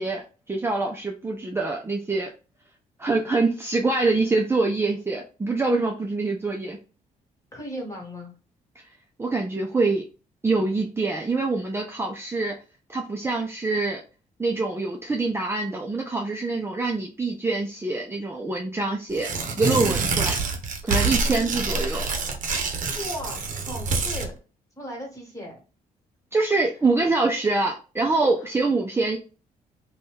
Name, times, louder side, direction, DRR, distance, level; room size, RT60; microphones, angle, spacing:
voice 1, 0.0-2.3 3.0-6.8 9.2-10.1 10.4-12.6 12.9-14.0 14.4-19.3 19.6-20.4 20.8-22.1 26.3-29.2, right 3 dB, 15° right, 1 dB, 0.5 m, -25 dB
voice 2, 7.5-8.3 21.2-21.5 22.9-24.3 24.8-25.6 28.4-28.5, equal, 20° left, 0 dB, 1.5 m, -36 dB
Tearing, 19.1-24.3, right 4 dB, 60° right, 0.7 m, -26 dB
2.5 x 2.3 x 3.4 m, 0.34 s
cardioid pair, 75°, 15 cm